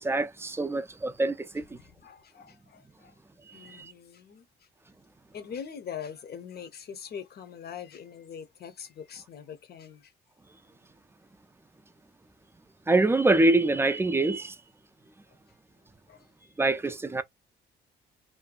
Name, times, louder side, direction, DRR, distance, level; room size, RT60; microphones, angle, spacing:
voice 1, 0.0-1.8 3.5-3.9 12.9-14.6 16.6-17.2, right 2 dB, 10° right, 0.4 m, -25 dB
voice 2, 1.7-3.2 3.5-4.7 5.3-10.1 15.3-15.4 16.1-16.3, left 7 dB, 55° left, 0.7 m, -43 dB
2.6 x 2.2 x 2.3 m
cardioid pair, 90°, 20 cm